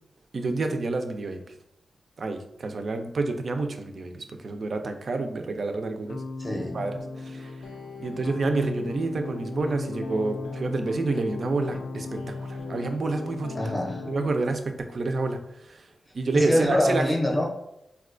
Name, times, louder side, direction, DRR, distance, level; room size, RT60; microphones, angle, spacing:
voice 1, 0.3-1.4 2.2-6.2 6.5-7.6 8.0-13.6 14.1-15.9 16.1-17.0, right 3 dB, 60° right, 6 dB, 0.4 m, -29 dB
sound 1, 6.1-14.4, left 3 dB, 85° left, 0.4 m, -36 dB
voice 2, 6.4-6.7 13.5-14.0 16.3-17.5, left 1 dB, 15° left, 0 dB, 0.6 m, -24 dB
4.1 x 2.2 x 2.4 m, 0.82 s
cardioid pair, 65°, 0 cm